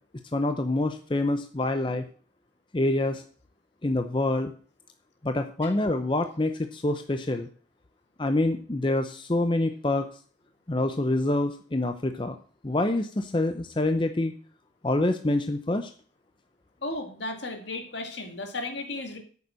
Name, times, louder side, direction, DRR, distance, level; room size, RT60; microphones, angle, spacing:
voice 1, 0.3-2.0 2.7-3.2 3.8-4.5 5.2-7.5 8.2-10.1 10.7-12.4 12.6-14.3 14.8-15.9, left 2 dB, 25° left, 7 dB, 0.6 m, -26 dB
voice 2, 16.8-19.2, left 2 dB, 70° left, 5 dB, 2.2 m, -34 dB
9.0 x 6.9 x 6.3 m, 0.44 s
head